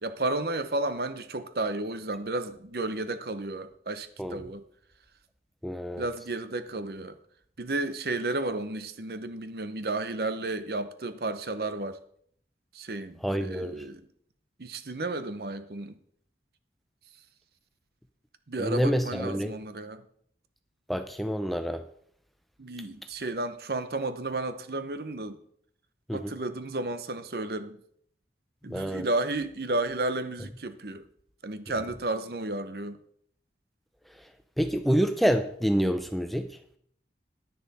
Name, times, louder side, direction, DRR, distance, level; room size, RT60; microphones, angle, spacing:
voice 1, 0.0-4.6 6.0-7.2 7.6-12.0 12.7-14.0 14.6-15.9 18.5-20.0 22.6-25.4 26.1-27.8 28.6-31.1 31.4-33.0, right 2 dB, 55° right, 0.8 m, -32 dB
voice 2, 5.6-6.0 13.2-13.8 18.6-19.5 20.9-21.8 26.1-26.3 28.7-29.1 34.6-36.5, equal, ahead, 0.5 m, -27 dB
10.5 x 10.0 x 4.1 m
head